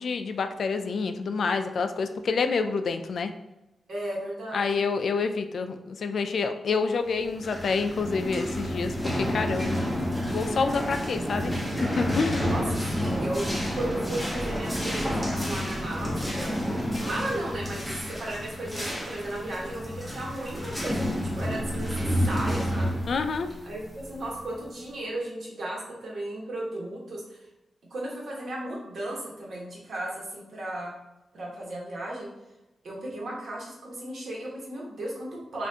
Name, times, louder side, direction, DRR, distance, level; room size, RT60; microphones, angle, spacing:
voice 1, 0.0-3.3 4.5-11.5 12.0-12.5 23.1-23.5, left 4 dB, 60° left, 8 dB, 0.3 m, -28 dB
voice 2, 3.9-4.8 12.4-16.5 17.0-21.0 21.3-23.0 23.6-27.4 27.9-30.9 31.3-32.3 32.8-35.7, right 1 dB, 60° right, -4 dB, 1.3 m, -35 dB
sound 1, 7.2-24.7, equal, ahead, 0.8 m, -30 dB
5.6 x 2.5 x 2.8 m, 0.97 s
wide cardioid pair, 170°, 0 cm